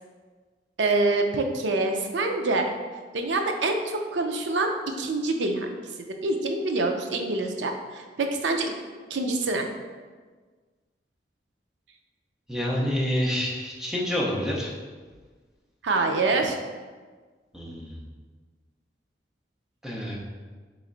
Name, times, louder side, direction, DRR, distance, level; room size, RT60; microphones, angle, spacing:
voice 1, 0.8-2.7 3.1-5.7 6.2-8.7 9.1-9.7 15.8-16.6, right 2 dB, 80° right, 4 dB, 0.5 m, -26 dB
voice 2, 12.5-14.7 17.5-18.0 19.8-20.2, equal, 5° right, -4 dB, 0.6 m, -28 dB
3.5 x 3.1 x 3.8 m, 1.4 s
head